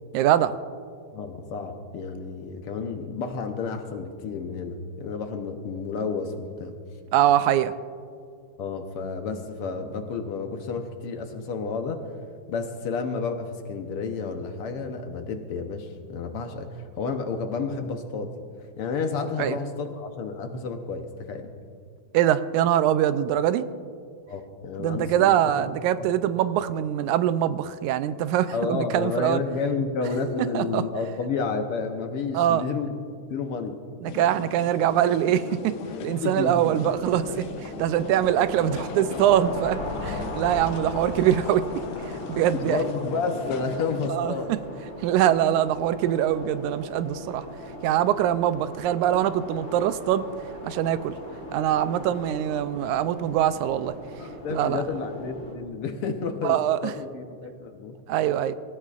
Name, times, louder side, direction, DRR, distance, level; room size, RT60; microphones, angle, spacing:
voice 1, 0.1-0.5 7.1-7.7 19.4-19.6 22.1-23.6 24.8-29.4 30.5-30.8 32.3-32.6 34.0-35.7 36.0-37.4 37.8-41.7 42.3-42.8 44.1-44.6 45.0-47.4 47.8-50.3 50.6-51.2 51.5-54.0 54.5-54.8 56.4-56.9 58.1-58.6, right 11 dB, 85° right, 13 dB, 2.0 m, -23 dB
voice 2, 1.1-6.7 8.6-12.0 12.5-18.3 18.8-21.5 24.3-25.7 26.0-26.1 28.5-32.9 33.3-33.8 36.2-36.7 37.3-37.4 40.1-40.2 42.5-44.5 54.2-57.9, left 4 dB, 65° left, 5 dB, 1.5 m, -31 dB
sound 1, 34.1-44.1, left 6 dB, 90° left, 1.1 m, -38 dB
sound 2, 36.8-55.5, left 1 dB, 35° left, 4.0 m, -39 dB
25.0 x 14.5 x 2.5 m, 2.2 s
omnidirectional pair, 3.4 m